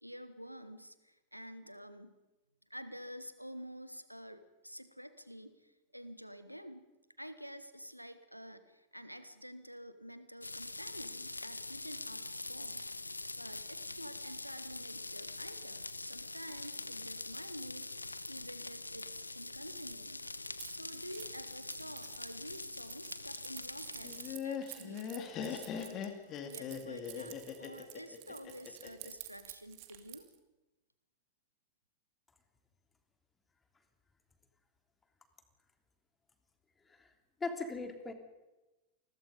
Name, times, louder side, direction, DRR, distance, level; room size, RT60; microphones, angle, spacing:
voice 1, 0.0-2.1 2.7-6.9 7.2-12.8 13.1-20.2 20.7-30.3, equal, 90° right, 12 dB, 1.5 m, -49 dB
sound 1, 10.4-24.4, left 2 dB, 80° left, 0.8 m, -44 dB
Keys jangling, 20.6-30.4, right 18 dB, 45° right, 2.5 m, -51 dB
Laughter, 24.0-29.1, left 8 dB, 35° left, 3.1 m, -41 dB
voice 2, 37.4-38.1, left 3 dB, 15° left, 6 dB, 3.2 m, -39 dB
28.5 x 21.0 x 5.3 m, 1.1 s
figure-of-eight pair, 90°, 0 cm